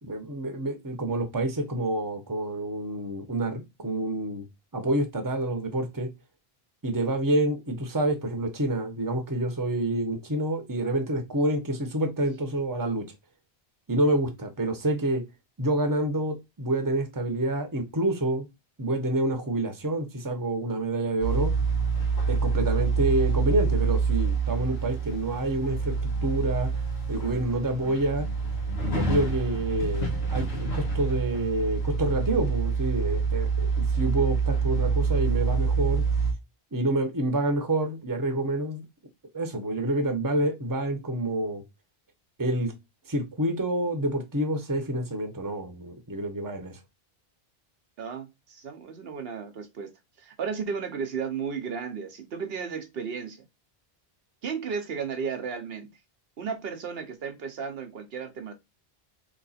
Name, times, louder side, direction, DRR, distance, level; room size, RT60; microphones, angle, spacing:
voice 1, 0.0-4.5 4.7-6.1 6.8-13.1 13.9-15.2 15.6-18.5 18.8-21.5 22.3-25.9 26.2-26.7 27.1-28.3 28.9-33.7 33.9-36.0 36.7-38.8 39.3-41.6 42.4-42.7 43.1-46.8, right 1 dB, 20° right, 0.8 m, -28 dB
sound 1, 21.2-36.3, right 4 dB, 80° left, 1.3 m, -27 dB
voice 2, 48.0-49.9 50.2-53.4 54.4-55.9 56.4-58.5, right 6 dB, 75° right, 0.9 m, -34 dB
3.1 x 3.0 x 4.1 m
omnidirectional pair, 1.0 m